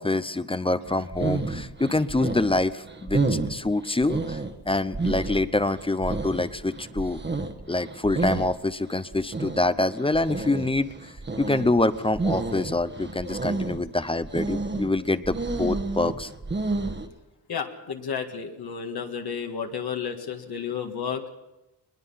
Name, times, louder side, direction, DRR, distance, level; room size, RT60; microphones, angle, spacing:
voice 1, 0.0-4.4 4.7-7.2 7.7-11.1 11.4-16.3, left 2 dB, 15° left, 14 dB, 0.6 m, -26 dB
sound 1, 0.9-17.1, right 3 dB, 25° right, 1.4 m, -31 dB
voice 2, 17.5-21.2, left 7 dB, 70° left, 3 dB, 1.8 m, -32 dB
21.5 x 21.0 x 5.7 m, 0.99 s
wide cardioid pair, 145°, 39 cm